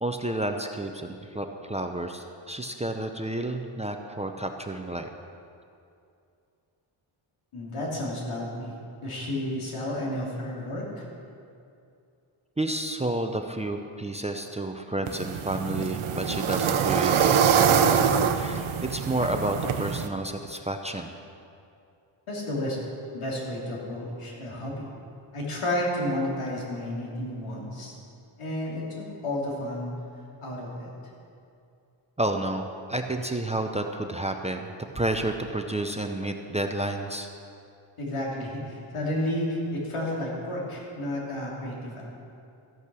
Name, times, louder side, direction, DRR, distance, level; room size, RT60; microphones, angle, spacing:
voice 1, 0.0-5.1 12.6-21.1 32.2-37.3, right 1 dB, 15° right, 4 dB, 0.5 m, -30 dB
voice 2, 7.5-8.7 9.0-11.1 22.3-22.8 23.1-24.9 25.3-28.0 28.4-29.9 30.4-30.9 38.0-42.1, left 1 dB, 85° left, -4 dB, 3.1 m, -31 dB
sound 1, 15.1-20.1, right 7 dB, 75° right, 0.8 m, -24 dB
14.0 x 8.4 x 6.2 m, 2.5 s
wide cardioid pair, 130°, 49 cm